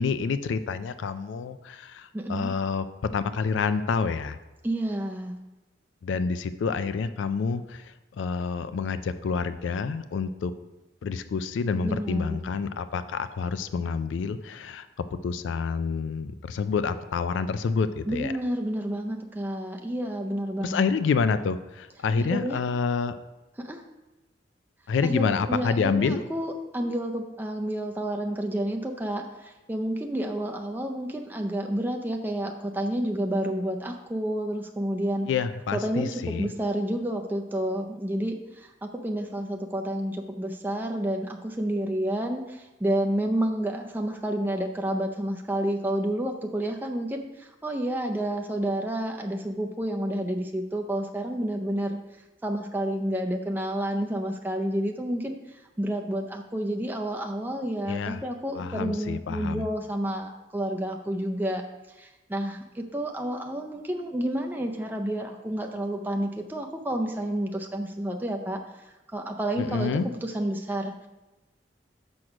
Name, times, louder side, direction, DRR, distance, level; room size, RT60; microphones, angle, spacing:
voice 1, 0.0-2.9 3.1-4.4 6.0-10.5 11.0-14.9 15.2-18.3 20.6-23.1 24.9-26.2 35.3-36.5 57.9-58.2 58.6-59.6 69.6-70.0, left 5 dB, 90° left, 12 dB, 0.3 m, -28 dB
voice 2, 2.1-2.5 4.6-5.4 11.8-12.4 18.1-20.8 22.2-22.6 23.6-23.8 25.0-35.3 35.7-52.0 52.4-55.4 55.8-61.6 62.0-68.8 69.1-69.9 70.2-71.1, right 1 dB, 10° right, 3 dB, 0.4 m, -30 dB
6.2 x 6.1 x 4.9 m, 1.0 s
head